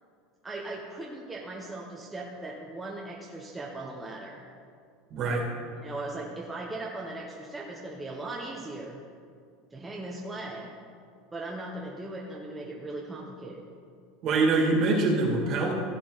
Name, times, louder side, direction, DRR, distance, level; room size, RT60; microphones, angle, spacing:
voice 1, 0.4-4.4 5.8-9.0 9.7-10.7 11.3-13.6, right 2 dB, 10° right, -3 dB, 0.8 m, -38 dB
voice 2, 5.1-5.4 14.2-15.7, right 3 dB, 35° right, -1 dB, 2.2 m, -24 dB
15.5 x 8.5 x 4.0 m, 2.2 s
supercardioid pair, 165°, 0 cm